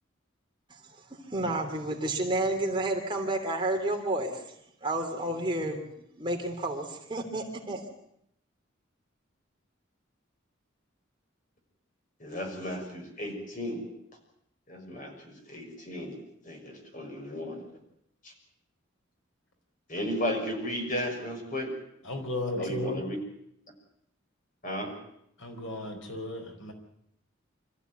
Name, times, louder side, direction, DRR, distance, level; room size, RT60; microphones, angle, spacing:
voice 1, 1.3-4.4 4.8-5.8 6.2-7.8, right 2 dB, 25° right, 2 dB, 3.1 m, -30 dB
voice 2, 12.2-13.9 14.7-16.2 16.4-17.7 18.2-18.3 19.9-21.7 22.6-23.2 24.6-25.0, left 1 dB, 45° left, 3 dB, 6.3 m, -34 dB
voice 3, 22.0-23.0 25.4-26.7, left 1 dB, 75° left, 4 dB, 4.6 m, -34 dB
25.5 x 14.5 x 9.4 m, 0.75 s
head